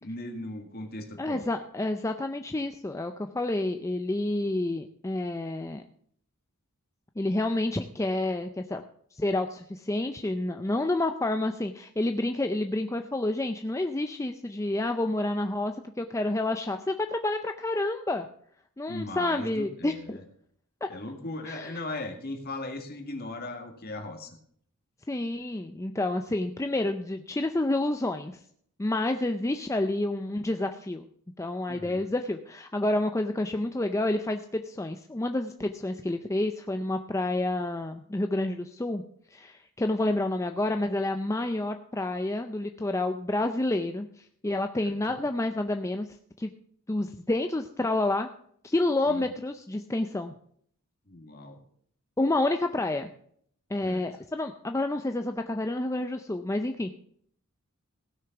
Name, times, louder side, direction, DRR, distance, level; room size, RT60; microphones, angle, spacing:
voice 1, 0.0-1.5 18.9-20.2 20.9-24.4 31.7-32.1 44.8-45.2 49.1-49.3 51.1-51.6 53.8-54.0, left 2 dB, 45° left, 4 dB, 1.9 m, -38 dB
voice 2, 1.2-5.8 7.2-8.8 9.1-18.3 18.8-20.2 20.8-20.9 21.5-21.8 25.1-28.4 28.8-31.1 31.4-39.0 39.3-46.1 46.4-46.5 46.9-48.3 48.6-50.3 52.2-53.1 53.7-56.9, left 2 dB, 15° left, 7 dB, 0.5 m, -29 dB
16.5 x 6.4 x 5.9 m, 0.63 s
head